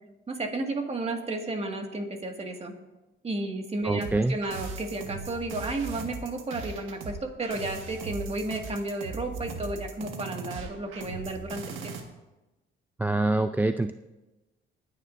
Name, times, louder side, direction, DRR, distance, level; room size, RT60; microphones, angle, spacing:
voice 1, 0.3-2.7 3.2-11.9, right 2 dB, 30° right, 3 dB, 1.9 m, -33 dB
voice 2, 3.8-4.4 13.0-13.9, right 2 dB, 10° right, 9 dB, 0.4 m, -25 dB
sound 1, 4.0-12.0, right 4 dB, 90° right, 1.6 m, -39 dB
24.5 x 9.6 x 2.6 m, 1.1 s
cardioid pair, 90°, 20 cm